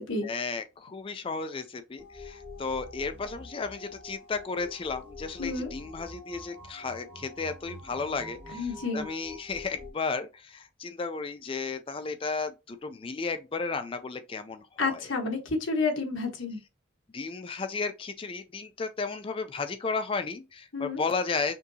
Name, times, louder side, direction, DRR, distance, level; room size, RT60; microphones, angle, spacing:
voice 1, 0.2-15.0 17.1-21.6, left 4 dB, 25° left, 0.3 m, -34 dB
sound 1, 2.0-9.9, left 2 dB, 10° right, 1.5 m, -46 dB
voice 2, 5.4-5.7 8.5-9.1 14.8-16.6 20.7-21.0, left 3 dB, 80° left, 1.3 m, -30 dB
6.0 x 2.7 x 2.7 m
head